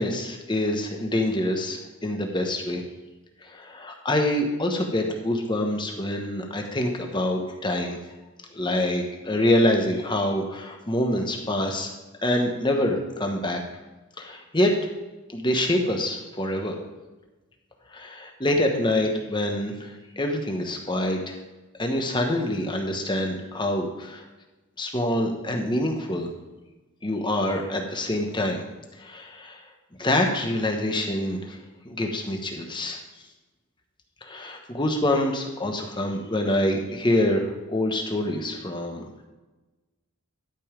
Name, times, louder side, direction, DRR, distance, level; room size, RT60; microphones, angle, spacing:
voice 1, 0.0-2.8 3.4-8.0 8.5-11.9 12.2-13.6 14.2-14.7 15.3-16.8 17.9-21.4 21.8-24.2 24.8-26.3 27.0-28.6 29.0-29.6 30.0-31.6 31.8-33.0 34.2-39.1, left 1 dB, 20° left, 2 dB, 1.1 m, -26 dB
12.0 x 5.4 x 5.1 m, 1.2 s
head